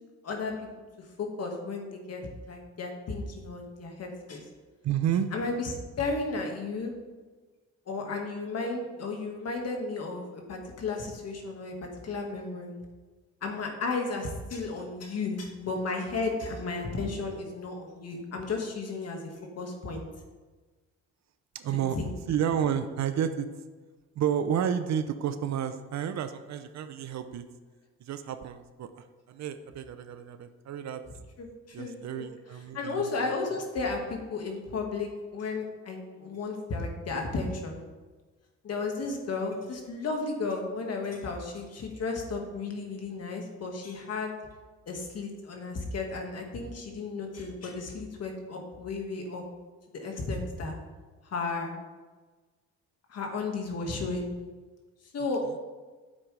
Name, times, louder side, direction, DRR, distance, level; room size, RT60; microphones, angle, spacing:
voice 1, 0.2-0.7 1.2-4.5 5.3-5.7 6.0-6.9 7.9-12.8 13.4-20.0 21.9-22.1 31.4-32.2 32.7-37.8 38.6-44.3 44.9-49.4 49.9-50.8 51.3-51.7 53.1-54.3 55.1-55.4, left 3 dB, 55° left, 2 dB, 1.9 m, -34 dB
voice 2, 4.8-5.3 21.5-22.0 22.3-23.5 24.2-27.4 28.0-31.0 31.7-33.1, right 9 dB, 65° right, 10 dB, 0.7 m, -31 dB
9.8 x 7.5 x 3.3 m, 1.3 s
cardioid pair, 90°, 30 cm